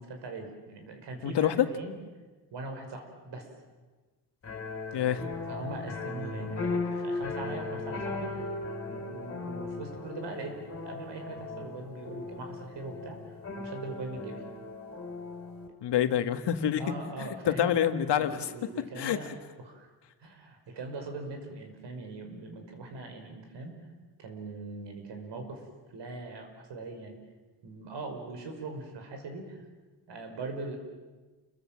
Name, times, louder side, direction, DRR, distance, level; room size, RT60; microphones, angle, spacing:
voice 1, 0.0-1.9 2.5-3.5 5.0-5.2 5.5-8.5 8.9-10.5 10.8-14.4 16.8-17.8 18.2-19.4 19.6-19.9 20.2-23.8 24.2-25.6 25.9-27.2 27.6-29.6 30.1-30.8, right 2 dB, 75° right, 5 dB, 5.5 m, -41 dB
voice 2, 1.2-1.7 4.9-5.2 15.8-16.9 17.5-18.5 19.0-19.2, left 10 dB, 75° left, 8 dB, 1.8 m, -26 dB
sound 1, 4.4-15.7, left 3 dB, 30° left, 4.1 m, -37 dB
29.5 x 23.0 x 7.5 m, 1.3 s
wide cardioid pair, 160°, 42 cm